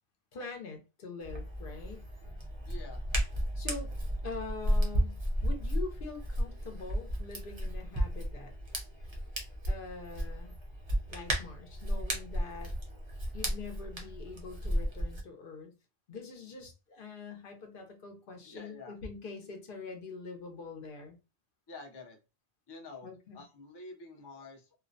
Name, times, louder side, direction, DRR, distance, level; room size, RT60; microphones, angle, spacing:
voice 1, 0.3-2.0 3.5-3.9 4.2-8.5 9.7-10.5 11.1-12.7 13.3-15.7 16.1-21.2 23.0-23.4, left 4 dB, 65° left, 0.8 m, -44 dB
Hands, 1.2-15.2, equal, 35° right, 0.6 m, -34 dB
voice 2, 2.7-3.0 18.4-19.0 21.7-22.2 22.7-24.8, left 3 dB, 35° left, 0.4 m, -48 dB
2.3 x 2.1 x 2.5 m
omnidirectional pair, 1.0 m